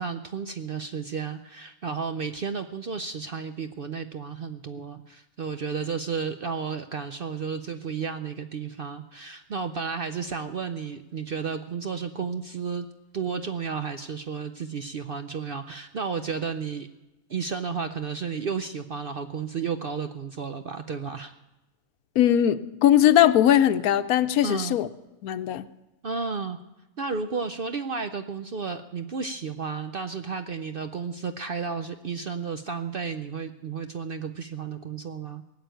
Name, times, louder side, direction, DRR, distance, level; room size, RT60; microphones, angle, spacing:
voice 1, 0.0-12.9 13.1-16.9 17.3-21.3 24.4-24.8 26.0-26.6 27.0-35.4, right 5 dB, 55° right, 8 dB, 0.6 m, -32 dB
voice 2, 22.2-24.9 25.2-25.6, left 11 dB, 80° left, 13 dB, 1.1 m, -20 dB
18.5 x 6.9 x 9.0 m, 1.0 s
omnidirectional pair, 1.5 m